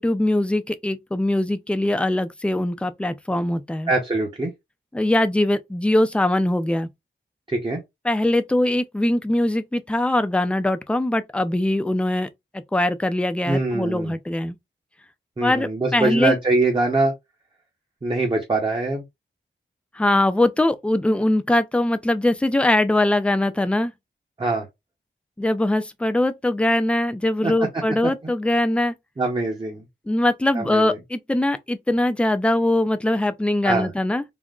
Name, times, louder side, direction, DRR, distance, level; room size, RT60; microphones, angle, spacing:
voice 1, 0.0-3.9 4.9-6.9 8.0-12.3 12.7-14.6 15.4-16.4 19.9-23.9 25.4-28.9 30.1-34.2, left 1 dB, 5° left, 0.3 m, -22 dB
voice 2, 3.9-4.5 7.5-7.8 13.5-14.1 15.4-17.1 18.0-19.0 24.4-24.7 27.4-27.5 28.0-28.1 29.2-29.8 30.5-31.0 33.6-33.9, right 2 dB, 25° right, 0.7 m, -23 dB
3.6 x 2.1 x 2.3 m
wide cardioid pair, 115°, 21 cm